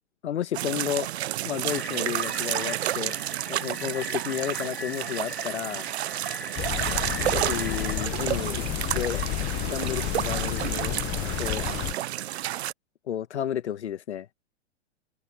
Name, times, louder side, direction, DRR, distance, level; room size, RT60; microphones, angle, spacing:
voice 1, 0.2-1.1 1.4-3.1 3.5-5.9 7.2-8.6 8.9-9.2 9.6-11.0 11.4-11.6 13.1-14.3, left 10 dB, 75° left, 1.4 m, -32 dB
sound 1, 0.5-12.7, right 13 dB, 65° right, 0.7 m, -30 dB
sound 2, 1.7-8.1, left 2 dB, 5° left, 2.3 m, -40 dB
sound 3, 6.6-11.9, left 23 dB, 35° left, 1.0 m, -31 dB
open air
hypercardioid pair, 115°, 34 cm